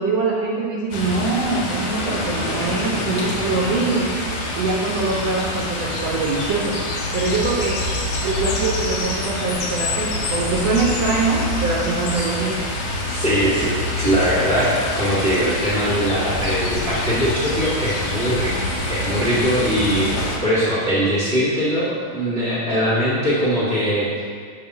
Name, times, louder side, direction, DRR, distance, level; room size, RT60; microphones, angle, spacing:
voice 1, 0.0-4.1 4.5-6.8 7.1-7.8 8.2-12.6, right 3 dB, 75° right, -4 dB, 1.6 m, -23 dB
sound 1, 0.9-20.4, left 2 dB, 75° left, 1.4 m, -26 dB
voice 2, 13.1-18.5 18.9-24.1, equal, 55° right, -11 dB, 0.7 m, -21 dB
7.0 x 2.8 x 5.7 m, 2.1 s
omnidirectional pair, 3.5 m